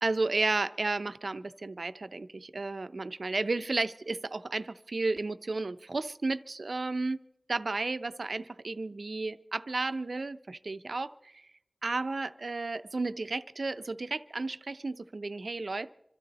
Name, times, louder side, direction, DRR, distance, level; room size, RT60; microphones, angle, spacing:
voice 1, 0.0-7.2 7.5-11.3 11.8-15.9, right 3 dB, 75° right, 12 dB, 0.5 m, -33 dB
26.0 x 13.0 x 4.1 m, 0.84 s
wide cardioid pair, 45°, 0 cm